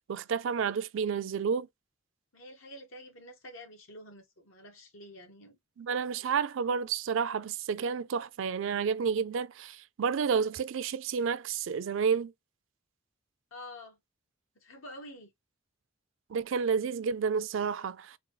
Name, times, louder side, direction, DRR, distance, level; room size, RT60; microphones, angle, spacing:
voice 1, 0.1-1.7 5.8-12.3 16.3-18.2, right 6 dB, 65° right, 0.4 m, -30 dB
voice 2, 2.3-5.6 13.5-14.0 14.6-15.3, left 1 dB, 80° left, 1.5 m, -48 dB
4.0 x 2.3 x 3.0 m
head